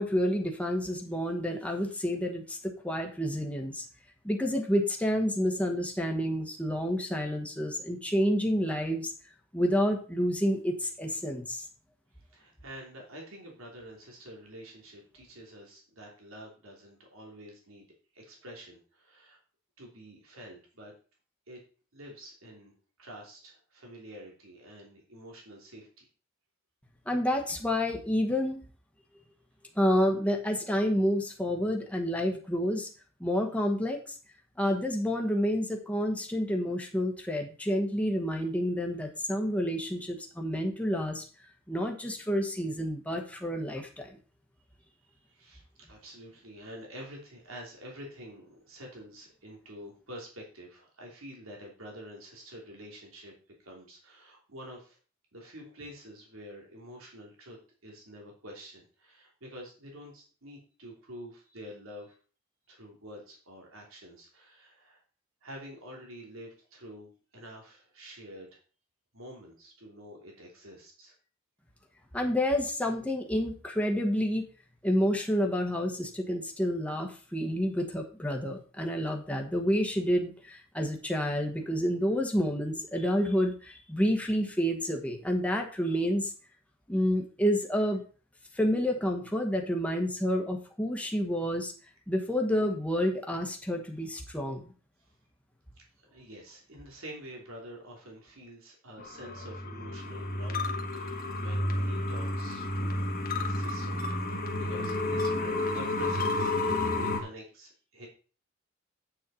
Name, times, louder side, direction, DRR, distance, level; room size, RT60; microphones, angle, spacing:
voice 1, 0.0-3.8 4.2-9.1 9.5-11.6 27.1-28.6 29.7-32.9 33.2-34.0 34.6-41.2 41.7-44.2 72.1-74.4 74.8-86.3 86.9-88.0 88.5-91.7 92.1-94.7, equal, 5° left, 2 dB, 1.3 m, -29 dB
voice 2, 12.3-17.9 18.1-19.4 19.8-20.9 21.5-21.6 21.9-22.7 23.0-26.1 45.0-53.3 53.6-55.0 55.3-57.6 57.8-62.1 62.7-65.0 65.4-68.6 69.1-71.2 95.0-95.1 96.0-104.0 104.3-108.1, equal, 85° right, -1 dB, 3.1 m, -48 dB
sound 1, 99.0-107.2, left 2 dB, 45° left, 1.3 m, -31 dB
8.4 x 6.5 x 4.3 m, 0.37 s
head